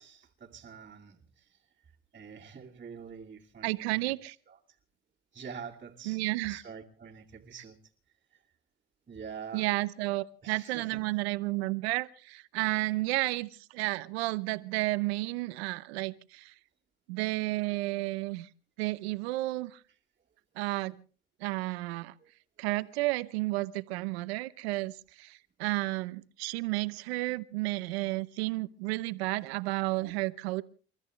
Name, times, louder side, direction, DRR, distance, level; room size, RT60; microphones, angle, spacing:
voice 1, 0.0-4.2 4.5-4.6 5.3-7.8 8.3-8.4 9.1-9.7 10.4-11.0 22.2-22.3 30.0-30.2, right 6 dB, 25° right, 2.4 m, -46 dB
voice 2, 3.6-4.3 6.1-6.6 9.5-16.5 17.1-18.5 18.8-19.8 20.6-21.0 21.4-22.1 22.6-30.6, right 21 dB, 90° right, 0.9 m, -32 dB
29.0 x 13.5 x 3.2 m
supercardioid pair, 85°, 31 cm